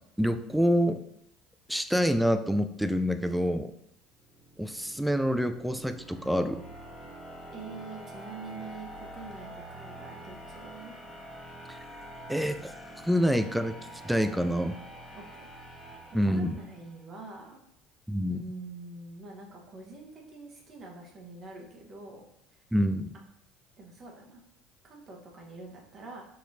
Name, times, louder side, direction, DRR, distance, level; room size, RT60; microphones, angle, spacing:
voice 1, 0.2-1.0 1.7-3.7 4.6-6.6 11.7-11.8 12.3-12.7 13.1-13.7 14.0-14.8 16.1-16.6 18.1-18.4 22.7-23.1, equal, 5° right, 9 dB, 0.3 m, -26 dB
sound 1, 4.1-17.0, right 1 dB, 25° left, 1.2 m, -46 dB
voice 2, 7.5-10.9 15.1-15.4 16.1-17.6 18.3-22.2 22.5-22.6 23.8-24.4 24.8-26.3, right 3 dB, 45° right, -1 dB, 1.1 m, -45 dB
4.9 x 2.9 x 2.7 m, 0.73 s
hypercardioid pair, 75°, 0 cm